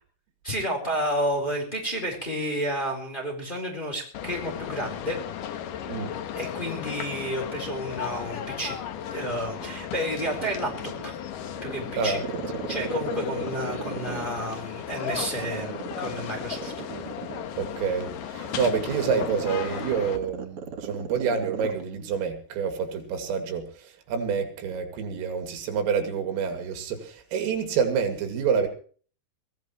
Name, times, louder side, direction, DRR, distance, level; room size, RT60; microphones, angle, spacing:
voice 1, 0.4-5.2 6.4-8.8 9.1-11.1 11.4-12.2 12.7-16.7, equal, 10° left, 1 dB, 3.6 m, -31 dB
sound 1, 4.1-20.2, left 9 dB, 85° left, 1.8 m, -35 dB
Growling, 9.4-11.1 11.6-14.6 15.0-21.8 22.1-22.2, right 6 dB, 65° right, 1.4 m, -36 dB
voice 2, 12.0-12.4 17.6-28.7, right 6 dB, 85° right, 6 dB, 5.1 m, -28 dB
23.0 x 15.5 x 3.2 m, 0.43 s
omnidirectional pair, 5.8 m